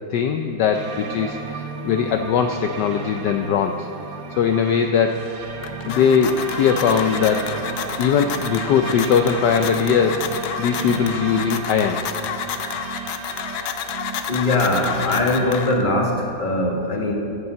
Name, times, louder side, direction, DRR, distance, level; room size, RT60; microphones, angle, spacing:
voice 1, 0.1-3.9 4.4-5.5 5.8-7.5 8.0-10.2 10.6-12.0, left 7 dB, 70° left, 5 dB, 1.2 m, -20 dB
sound 1, 0.7-15.8, right 5 dB, 75° right, 1.7 m, -34 dB
sound 2, 5.4-16.1, left 8 dB, 85° left, 1.5 m, -31 dB
voice 2, 14.3-17.1, left 2 dB, 25° left, 0 dB, 1.7 m, -21 dB
12.0 x 8.4 x 7.7 m, 2.6 s
omnidirectional pair, 2.1 m